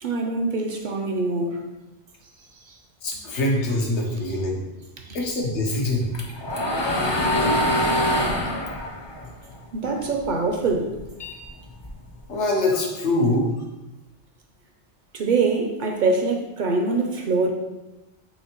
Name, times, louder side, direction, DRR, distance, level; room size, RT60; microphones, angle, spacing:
voice 1, 0.0-1.6 2.6-2.7 3.1-3.2 5.1-5.2 9.7-10.9 15.1-17.5, right 3 dB, 60° right, 4 dB, 0.5 m, -24 dB
voice 2, 3.0-4.6 5.1-6.1 12.3-13.5, left 1 dB, 90° left, -1 dB, 1.3 m, -23 dB
sound 1, 5.7-10.3 10.6-12.2, equal, 35° left, 0.4 m, -24 dB
5.6 x 3.2 x 2.9 m, 1.0 s
omnidirectional pair, 1.1 m